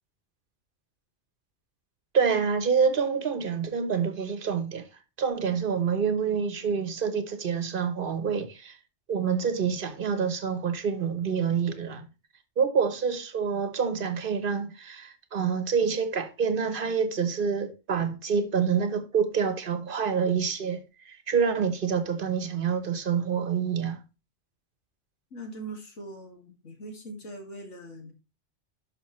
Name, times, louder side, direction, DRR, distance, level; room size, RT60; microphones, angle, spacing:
voice 1, 2.1-4.8 5.2-8.8 9.1-12.1 12.6-24.0, right 6 dB, 45° right, 1.2 m, -27 dB
voice 2, 25.3-28.1, right 2 dB, 75° left, 2.6 m, -41 dB
11.5 x 5.9 x 3.2 m
omnidirectional pair, 1.2 m